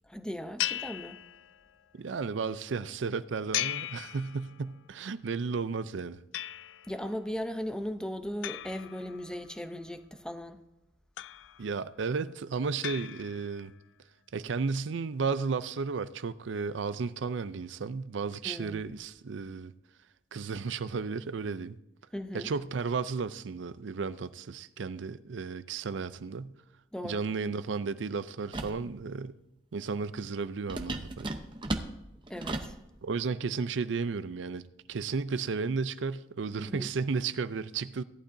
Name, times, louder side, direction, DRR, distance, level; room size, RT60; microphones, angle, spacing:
voice 1, 0.1-1.2 6.9-10.6 18.4-18.8 22.1-22.5 26.9-27.3 32.3-32.8 36.6-36.9, equal, 5° left, 0.6 m, -37 dB
sound 1, 0.6-1.8 3.5-4.8 6.3-7.0 8.4-9.6 11.2-11.9 12.8-13.7, left 13 dB, 85° left, 0.3 m, -37 dB
voice 2, 1.9-6.2 11.6-13.7 14.3-19.7 20.3-21.8 22.3-26.5 27.0-29.3 29.7-31.3 33.0-34.6 34.9-38.0, right 5 dB, 90° right, 0.5 m, -33 dB
sound 2, 28.5-28.8 30.7-32.8, right 2 dB, 25° right, 0.8 m, -35 dB
16.5 x 11.5 x 2.7 m
head